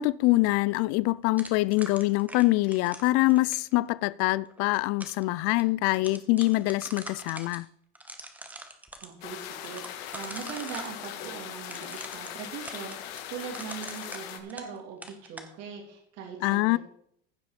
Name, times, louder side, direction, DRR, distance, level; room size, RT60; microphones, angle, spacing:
voice 1, 0.0-7.7 16.4-16.8, left 20 dB, 50° left, 0.4 m, -24 dB
sound 1, 1.4-3.7 4.5-5.2 5.6-5.7 5.9-7.6 7.9-9.1 9.6-10.9 11.6-14.8 15.0-15.5, right 1 dB, 5° right, 1.2 m, -43 dB
voice 2, 9.0-16.8, right 7 dB, 55° right, 3.1 m, -41 dB
sound 2, 9.2-14.4, left 11 dB, 80° left, 1.5 m, -40 dB
15.0 x 5.6 x 5.2 m
supercardioid pair, 130°, 30 cm